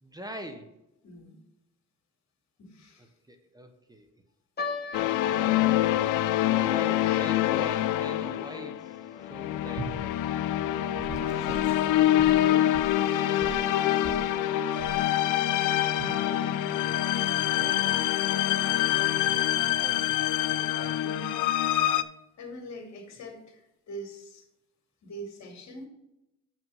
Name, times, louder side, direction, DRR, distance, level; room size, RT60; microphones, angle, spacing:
voice 1, 0.0-0.7 3.3-4.1 4.8-5.7 6.5-10.2 16.2-20.2 20.5-21.0, right 1 dB, 15° right, 6 dB, 1.0 m, -45 dB
voice 2, 1.0-1.4 2.6-3.1 4.9-5.6 6.7-7.6 8.0-8.1 11.1-14.8 16.2-16.5 21.0-21.4 21.8-23.6 23.9-24.4 25.0-25.9, equal, 65° left, 2 dB, 2.4 m, -44 dB
sound 1, 4.6-11.1 11.3-11.4 12.2-12.5 13.1-13.2 13.5-13.7, left 4 dB, 35° left, 1.3 m, -41 dB
sound 2, 4.9-22.0, left 13 dB, 85° left, 0.5 m, -26 dB
Gurgling / Sink (filling or washing) / Liquid, 9.8-10.0 10.9-13.6 14.0-14.3 14.8-15.1 16.0-16.2, right 3 dB, 50° right, 1.3 m, -40 dB
7.1 x 5.9 x 5.5 m, 0.88 s
cardioid pair, 90°, 30 cm